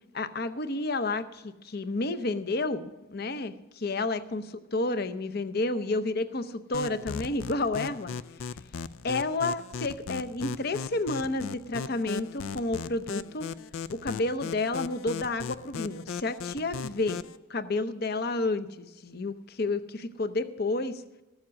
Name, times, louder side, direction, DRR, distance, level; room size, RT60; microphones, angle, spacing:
voice 1, 0.1-8.1 9.0-13.5 13.9-17.2 17.5-21.0, left 2 dB, 50° left, 12 dB, 0.7 m, -30 dB
sound 1, 6.7-17.4, left 6 dB, 85° left, 0.4 m, -37 dB
14.0 x 7.2 x 6.3 m, 1.0 s
head